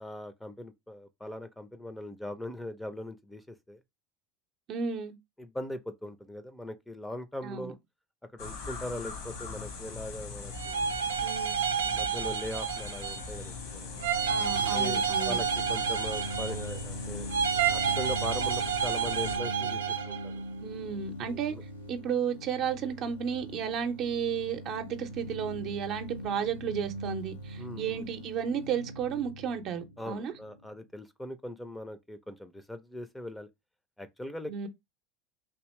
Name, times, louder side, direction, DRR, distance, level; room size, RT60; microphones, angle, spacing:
voice 1, 0.0-3.8 5.4-7.8 8.3-10.9 11.9-13.9 14.7-17.3 17.7-20.4 21.2-21.6 27.6-28.0 30.0-33.5 34.0-34.7, left 1 dB, 5° left, 0.6 m, -40 dB
voice 2, 4.7-5.1 7.4-7.7 11.2-11.6 14.3-15.4 20.6-21.5 21.9-30.3 34.5-34.7, right 7 dB, 50° right, 0.7 m, -33 dB
sound 1, 8.4-19.4, left 5 dB, 65° left, 1.2 m, -41 dB
sound 2, 10.5-13.4 14.0-16.8 17.3-20.3, right 7 dB, 80° right, 0.4 m, -30 dB
sound 3, 13.1-30.7, right 1 dB, 80° left, 0.6 m, -41 dB
3.5 x 2.8 x 3.1 m
hypercardioid pair, 75°, 0 cm